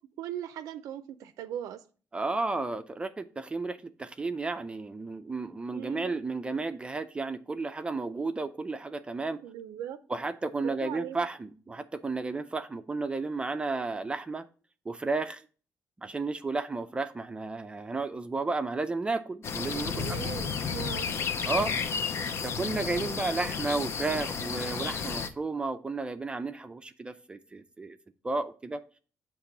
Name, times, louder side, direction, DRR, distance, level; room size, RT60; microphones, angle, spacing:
voice 1, 0.2-1.8 5.7-6.2 9.4-10.0 10.6-11.2 19.6-21.1, right 10 dB, 85° right, 0.4 m, -39 dB
voice 2, 2.1-9.4 10.1-14.4 14.9-15.4 16.0-20.2 21.4-21.8 22.4-28.0 28.2-28.8, right 3 dB, 20° right, 0.4 m, -33 dB
sound 1, 19.4-25.3, left 6 dB, 50° left, 0.6 m, -32 dB
6.7 x 3.0 x 5.8 m
cardioid pair, 110°, 6 cm